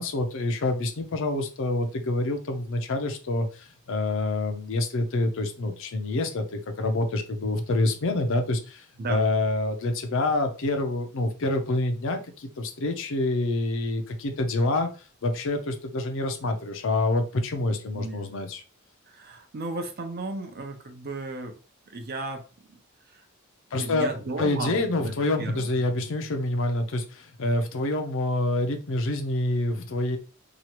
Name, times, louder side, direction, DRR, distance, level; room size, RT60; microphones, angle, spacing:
voice 1, 0.0-14.9 15.2-18.6 23.7-30.2, left 2 dB, 65° left, 6 dB, 0.5 m, -27 dB
voice 2, 17.9-18.3 19.1-21.6 21.9-22.4 22.7-22.8 23.1-23.2 23.7-25.8, right 2 dB, 45° right, 6 dB, 0.6 m, -35 dB
3.0 x 2.3 x 2.9 m, 0.35 s
head